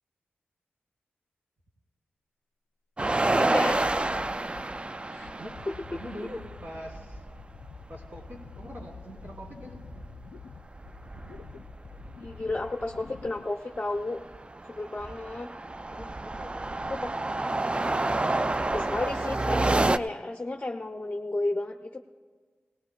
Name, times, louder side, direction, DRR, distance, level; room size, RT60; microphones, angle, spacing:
sound 1, 3.0-7.4 7.6-7.7 8.0-10.4 10.7-12.5 13.1-13.3 13.7-20.0, right 2 dB, 25° right, 0.3 m, -29 dB
voice 1, 3.4-3.8 5.1-5.3 12.2-14.2 14.7-15.5 16.9-17.0 18.7-22.0, left 2 dB, 30° left, 3 dB, 0.6 m, -32 dB
sound 2, 3.7-13.4, left 6 dB, 85° left, 0.3 m, -48 dB
voice 2, 5.3-7.2 7.9-9.8 15.8-17.1, equal, 55° right, -2 dB, 3.0 m, -43 dB
18.5 x 17.5 x 2.2 m, 1.5 s
cardioid pair, 45°, 4 cm